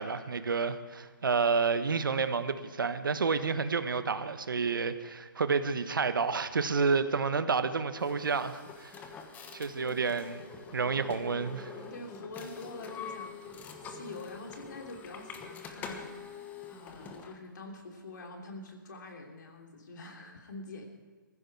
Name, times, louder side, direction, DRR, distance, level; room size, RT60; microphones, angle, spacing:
voice 1, 0.0-9.0 9.5-10.4 10.7-11.7, right 5 dB, 75° right, 11 dB, 1.2 m, -30 dB
sound 1, 8.0-17.4, left 5 dB, 15° left, 1.2 m, -45 dB
voice 2, 11.8-13.5 13.8-20.9, left 2 dB, 65° left, 2 dB, 2.9 m, -46 dB
18.5 x 15.0 x 4.7 m, 1.5 s
hypercardioid pair, 145°, 11 cm